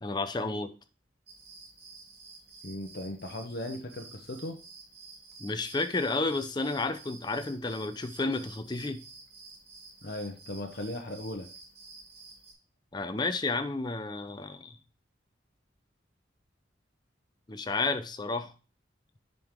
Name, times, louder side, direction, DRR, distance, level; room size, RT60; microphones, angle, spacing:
voice 1, 0.0-0.8 5.4-9.0 12.9-14.8 17.5-18.5, left 3 dB, 25° left, 0.6 m, -31 dB
sound 1, 1.3-12.5, right 4 dB, 60° right, 3.0 m, -51 dB
voice 2, 2.6-4.6 10.0-11.5, left 1 dB, 55° left, 0.9 m, -37 dB
7.6 x 5.3 x 3.6 m
head